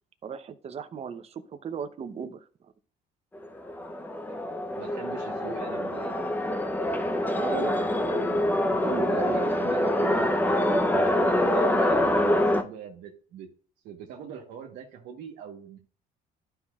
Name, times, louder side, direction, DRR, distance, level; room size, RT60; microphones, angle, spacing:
voice 1, 0.2-2.4 7.4-10.3 10.7-10.9 11.1-11.2, right 7 dB, 40° right, 10 dB, 0.7 m, -36 dB
sound 1, 3.3-12.6, left 1 dB, 10° left, 0.7 m, -25 dB
voice 2, 4.8-6.3 9.1-10.2 10.4-13.5 13.8-15.8, right 7 dB, 85° right, 0 dB, 1.2 m, -42 dB
12.0 x 5.6 x 2.4 m, 0.43 s
cardioid pair, 110°, 17 cm